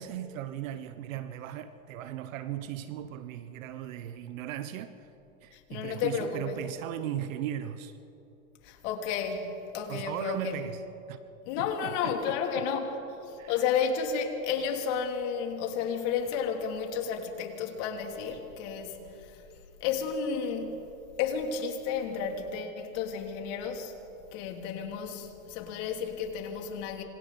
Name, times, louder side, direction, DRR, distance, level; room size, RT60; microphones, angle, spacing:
voice 1, 0.0-5.1 5.4-8.0 9.9-10.8 11.1-11.2 11.6-12.6 13.4-13.6, right 11 dB, 70° right, 1.2 m, -37 dB
voice 2, 5.5-6.6 8.6-10.6 11.4-12.9 13.2-19.4 19.8-20.8 21.2-23.9 24.3-27.0, left 6 dB, 55° left, 3.2 m, -32 dB
27.0 x 26.0 x 4.2 m
supercardioid pair, 125°, 41 cm